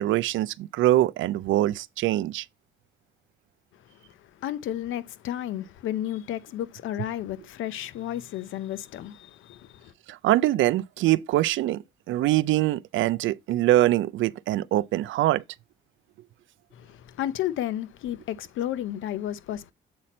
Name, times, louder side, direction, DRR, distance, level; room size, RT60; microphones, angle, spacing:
voice 1, 0.0-2.4 10.1-15.4, right 15 dB, 75° right, 0.4 m, -23 dB
voice 2, 3.8-9.9 16.7-19.7, left 12 dB, 80° left, 0.6 m, -33 dB
7.7 x 4.2 x 4.1 m
cardioid pair, 90°, 20 cm